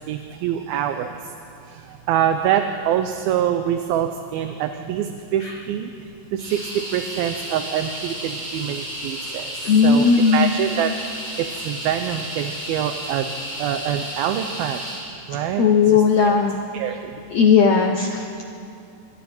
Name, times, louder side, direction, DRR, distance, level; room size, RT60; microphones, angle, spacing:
voice 1, 0.1-1.1 1.7-5.9 6.3-9.5 9.8-10.9 11.6-13.3 13.6-14.8 15.3-16.4 16.7-17.1, right 10 dB, 75° right, 6 dB, 2.6 m, -25 dB
sound 1, 6.4-15.1, equal, 20° right, 7.1 m, -33 dB
voice 2, 9.6-10.5 15.3-16.6 17.3-18.4, left 5 dB, 80° left, 3 dB, 1.5 m, -17 dB
28.0 x 24.0 x 4.4 m, 2.5 s
omnidirectional pair, 4.6 m